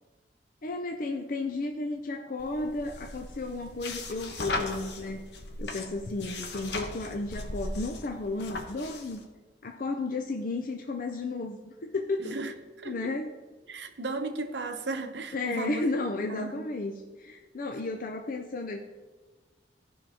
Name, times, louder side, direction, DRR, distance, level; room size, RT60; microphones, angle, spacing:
voice 1, 0.6-5.2 5.6-9.3 9.6-12.5 12.8-13.3 15.3-18.8, left 2 dB, 50° left, 3 dB, 0.6 m, -33 dB
sound 1, 2.4-9.2, left 2 dB, 70° left, 1.1 m, -38 dB
voice 2, 12.2-12.5 12.8-13.1 13.7-16.0 16.3-16.6, right 2 dB, 80° right, 7 dB, 0.9 m, -35 dB
15.5 x 5.6 x 3.5 m, 1.3 s
head